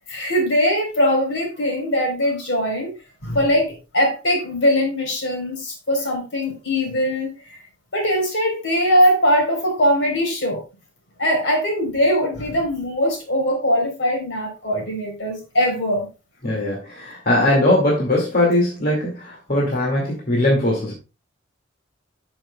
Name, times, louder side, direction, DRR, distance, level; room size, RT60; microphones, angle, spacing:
voice 1, 0.1-2.9 3.2-7.6 7.9-10.6 11.2-16.1, equal, 75° left, 3.9 m, -21 dB
voice 2, 16.4-20.9, left 1 dB, 55° left, 2.2 m, -20 dB
13.0 x 6.1 x 2.3 m
head